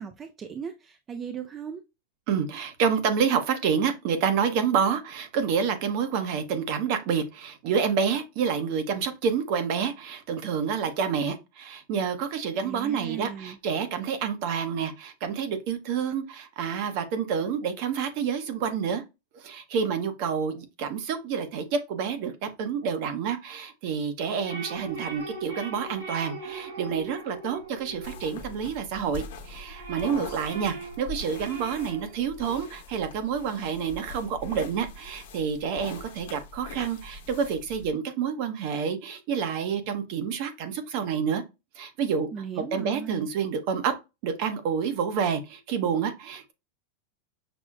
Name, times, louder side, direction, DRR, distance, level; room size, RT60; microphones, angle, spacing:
voice 1, 0.0-1.8 12.6-13.6 42.3-43.3, right 7 dB, 20° right, 0.3 m, -37 dB
voice 2, 2.3-19.0 19.3-41.4 41.8-42.3 42.6-43.9 44.2-46.5, right 6 dB, 50° right, 0.7 m, -28 dB
sound 1, 24.4-29.0 29.4-32.2, right 4 dB, 85° right, 2.4 m, -40 dB
sound 2, 28.0-37.9, left 3 dB, 75° left, 0.8 m, -42 dB
6.0 x 2.0 x 2.4 m
supercardioid pair, 155°, 0 cm